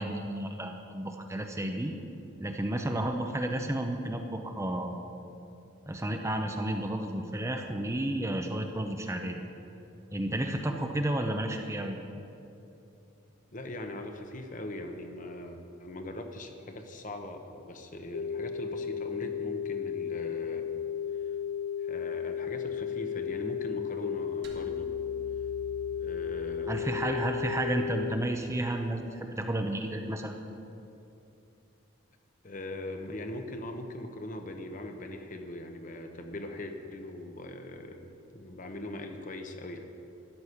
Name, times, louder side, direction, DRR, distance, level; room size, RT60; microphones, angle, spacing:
voice 1, 0.0-1.9 2.4-5.0 5.9-9.4 10.1-12.0 26.7-30.4, right 1 dB, 15° right, 4 dB, 0.7 m, -32 dB
voice 2, 13.5-20.6 21.1-21.4 21.8-24.9 25.9-27.3 32.4-39.8, left 1 dB, 40° left, 5 dB, 1.0 m, -41 dB
sound 1, 18.1-28.1, left 8 dB, 80° left, 0.5 m, -34 dB
sound 2, 24.4-28.8, left 2 dB, 55° right, 1.5 m, -50 dB
13.5 x 6.2 x 9.8 m, 2.8 s
head